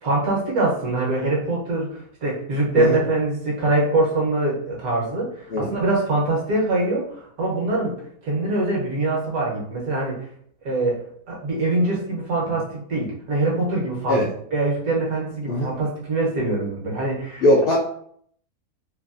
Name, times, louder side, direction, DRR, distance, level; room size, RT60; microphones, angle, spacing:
voice 1, 0.0-8.0 8.2-10.2 10.6-11.0 11.3-14.2 14.5-17.4, right 2 dB, 75° right, -3 dB, 1.4 m, -23 dB
voice 2, 17.4-17.8, left 1 dB, 85° left, -3 dB, 0.5 m, -19 dB
3.1 x 2.3 x 2.5 m, 0.64 s
omnidirectional pair, 1.6 m